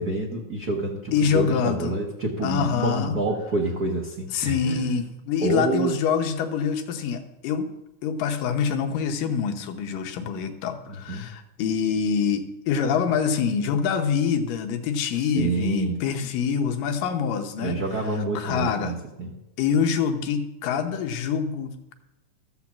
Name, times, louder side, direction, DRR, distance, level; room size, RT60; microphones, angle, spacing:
voice 1, 0.0-4.9 5.4-5.9 10.9-11.3 15.1-16.0 17.6-19.3, right 2 dB, 90° right, 0 dB, 0.8 m, -28 dB
voice 2, 1.1-2.0 2.4-3.2 4.3-7.7 8.0-17.8 18.4-19.0 19.6-21.9, left 6 dB, 85° left, 5 dB, 2.6 m, -25 dB
13.5 x 5.8 x 7.2 m, 0.93 s
omnidirectional pair, 3.8 m